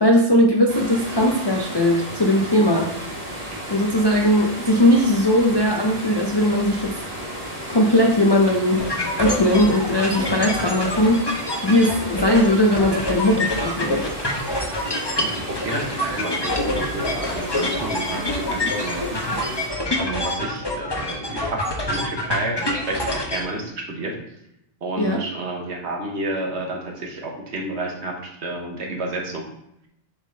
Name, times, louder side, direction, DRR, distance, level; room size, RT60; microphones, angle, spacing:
voice 1, 0.0-2.9 3.7-6.9 7.7-8.9 9.2-11.3 11.6-14.0 25.0-25.2, left 1 dB, 40° left, 1 dB, 0.3 m, -19 dB
sound 1, 0.7-19.7, equal, 30° right, 1.5 m, -34 dB
sound 2, 8.8-23.4, left 1 dB, 25° left, 0.8 m, -26 dB
voice 2, 15.2-19.7 20.0-24.1 24.8-29.4, right 2 dB, 60° right, 1 dB, 1.3 m, -30 dB
7.1 x 3.7 x 3.7 m, 0.81 s
omnidirectional pair, 1.3 m